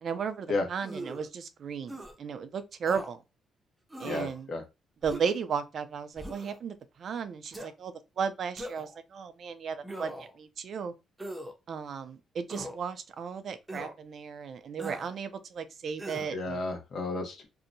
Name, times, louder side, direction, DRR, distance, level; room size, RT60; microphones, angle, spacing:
voice 1, 0.0-3.2 4.0-4.5 5.0-10.1 10.4-10.9 11.7-16.6, right 6 dB, 55° right, 0.4 m, -35 dB
sound 1, 0.8-1.3 1.9-2.1 2.8-3.1 3.9-4.4 5.0-5.4 6.2-6.6 7.5-7.7 8.6-9.0 9.8-10.4 11.2-11.5 12.5-12.8 13.7-13.9 14.8-15.1 16.0-16.3, right 1 dB, 15° right, 0.6 m, -40 dB
voice 2, 4.0-4.6 16.3-17.5, left 2 dB, 55° left, 0.8 m, -32 dB
2.7 x 2.1 x 2.5 m
cardioid pair, 90°, 0 cm